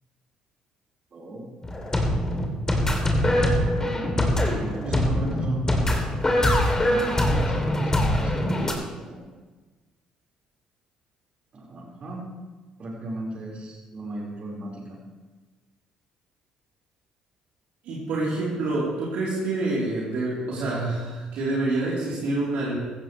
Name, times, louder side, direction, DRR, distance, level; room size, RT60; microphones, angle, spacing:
voice 1, 1.1-1.5 3.9-5.6 6.9-9.2 11.5-12.3 12.8-15.0, right 1 dB, 50° right, -3 dB, 4.8 m, -35 dB
sound 1, 1.6-8.7, left 1 dB, 20° left, 3.1 m, -23 dB
voice 2, 17.8-22.8, right 2 dB, 70° right, -7 dB, 3.7 m, -27 dB
16.0 x 15.0 x 3.3 m, 1.3 s
hypercardioid pair, 55°, 3 cm